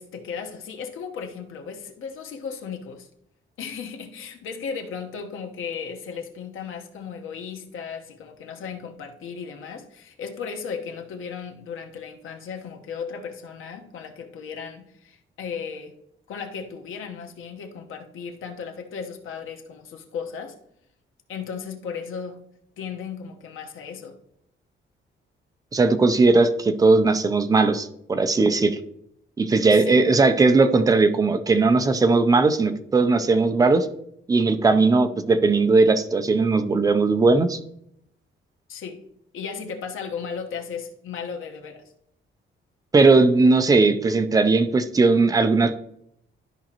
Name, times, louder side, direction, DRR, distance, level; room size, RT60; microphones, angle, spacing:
voice 1, 0.0-3.1 3.6-15.9 16.3-20.6 21.3-22.4 22.8-24.2 29.7-30.0 38.7-39.0 39.3-41.8, left 6 dB, 80° left, 1.2 m, -35 dB
voice 2, 25.7-28.8 29.4-33.9 34.3-37.6 42.9-45.8, right 3 dB, 15° right, 0.5 m, -18 dB
13.0 x 5.1 x 3.0 m
cardioid pair, 180°, 21 cm